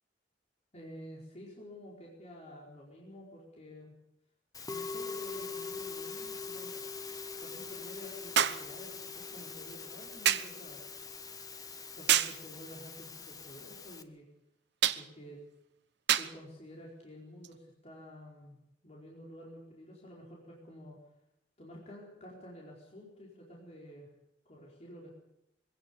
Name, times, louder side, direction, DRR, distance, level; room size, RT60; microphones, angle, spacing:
voice 1, 0.7-3.9 4.7-6.8 7.4-10.8 11.9-14.3 14.9-15.4 16.1-21.0 21.6-24.1 24.4-25.1, equal, 35° left, -3 dB, 4.6 m, -50 dB
Musical instrument, 4.5-14.0, left 4 dB, 20° left, 1.2 m, -43 dB
sound 1, 4.6-4.7 8.4-8.7 10.3-10.6 12.1-12.4 14.8-15.1 16.1-16.4 17.4-17.6, right 10 dB, 65° right, 1.0 m, -27 dB
24.0 x 17.0 x 7.1 m, 0.83 s
head